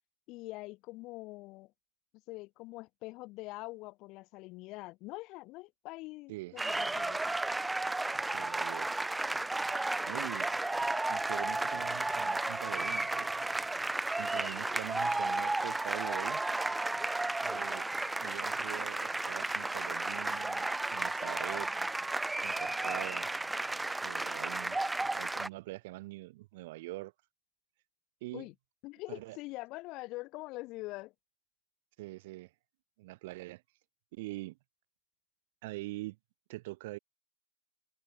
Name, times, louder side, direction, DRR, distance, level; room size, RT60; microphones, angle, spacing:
voice 1, 0.3-1.7 2.3-7.3 28.3-28.5 28.8-31.1, left 21 dB, 40° left, 2.0 m, -44 dB
voice 2, 6.3-6.6 8.3-9.0 10.1-10.5 11.1-13.3 14.2-16.4 17.4-17.9 18.2-21.7 22.4-23.3 24.0-24.8 25.1-27.1 28.2-28.5 29.1-29.4 32.0-32.5 33.0-33.6 34.1-34.6 35.6-36.2 36.5-37.0, right 20 dB, 50° right, 4.2 m, -43 dB
sound 1, 6.6-25.5, right 2 dB, 5° right, 0.4 m, -33 dB
figure-of-eight pair, 90°, 0 cm